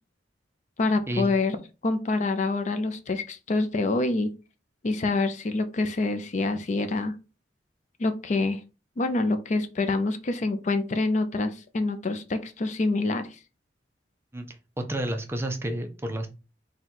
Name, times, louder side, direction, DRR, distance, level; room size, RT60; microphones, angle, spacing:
voice 1, 0.8-1.6 1.8-4.3 4.8-7.1 8.0-8.6 9.0-13.3, left 3 dB, 40° left, 9 dB, 0.4 m, -26 dB
voice 2, 14.3-16.3, right 1 dB, 15° right, 4 dB, 0.5 m, -31 dB
3.9 x 2.2 x 4.4 m, 0.31 s
head